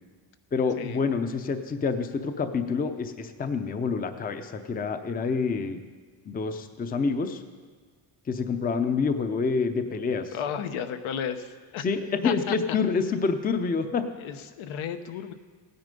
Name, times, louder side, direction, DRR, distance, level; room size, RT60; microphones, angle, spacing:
voice 1, 0.5-5.8 6.3-7.4 8.3-10.3 11.8-14.1, left 5 dB, 20° left, 9 dB, 0.6 m, -27 dB
voice 2, 10.3-11.8 12.2-12.6 14.2-15.3, left 8 dB, 80° left, 9 dB, 1.0 m, -33 dB
16.5 x 9.6 x 5.3 m, 1.5 s
cardioid pair, 150°, 48 cm